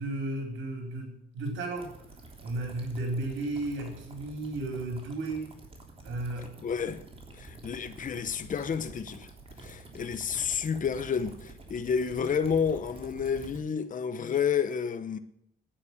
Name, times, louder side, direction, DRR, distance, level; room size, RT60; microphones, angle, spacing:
voice 1, 0.0-1.9 2.4-5.5 6.0-6.5 7.5-7.7, right 2 dB, 75° right, 4.2 m, -34 dB
sound 1, 1.8-13.6, right 2 dB, 30° right, 3.3 m, -48 dB
voice 2, 6.6-7.0 7.3-9.3 9.6-15.2, left 7 dB, 40° left, 0.9 m, -30 dB
10.0 x 8.5 x 9.8 m
cardioid pair, 90°, 20 cm